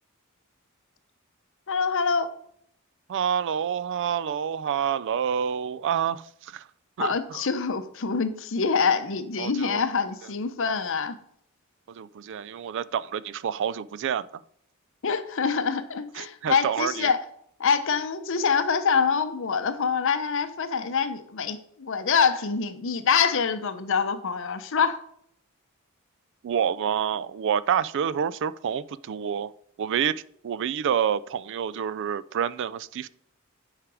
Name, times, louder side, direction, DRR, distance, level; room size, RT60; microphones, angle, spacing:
voice 1, 1.7-2.3 7.0-11.2 15.0-17.2 17.6-25.0, left 5 dB, 65° left, 0.8 m, -25 dB
voice 2, 3.1-6.7 7.0-7.4 9.4-9.8 11.9-14.4 16.2-17.1 26.4-29.5 29.8-33.1, right 8 dB, 60° right, 0.3 m, -28 dB
8.8 x 4.9 x 4.8 m
head